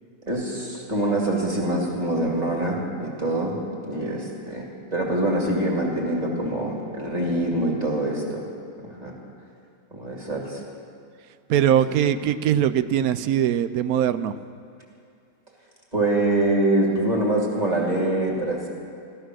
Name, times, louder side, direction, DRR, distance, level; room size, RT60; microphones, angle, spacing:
voice 1, 0.3-4.7 4.9-8.4 8.8-9.1 9.9-10.6 15.9-18.7, right 1 dB, 25° right, -2 dB, 2.6 m, -24 dB
voice 2, 11.5-14.4, right 10 dB, 80° right, 13 dB, 1.0 m, -21 dB
14.0 x 14.0 x 6.2 m, 2.5 s
omnidirectional pair, 1.6 m